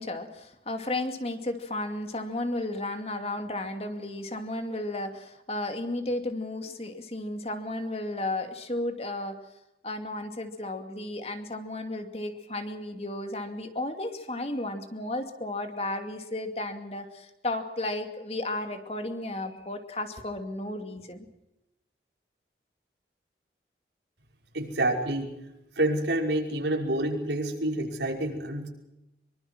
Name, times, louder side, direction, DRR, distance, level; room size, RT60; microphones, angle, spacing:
voice 1, 0.0-9.4 9.8-21.3, left 1 dB, 35° left, 6 dB, 2.5 m, -33 dB
voice 2, 24.5-25.4 25.8-28.7, right 1 dB, 90° right, 1 dB, 5.5 m, -28 dB
25.0 x 24.0 x 6.2 m, 0.88 s
head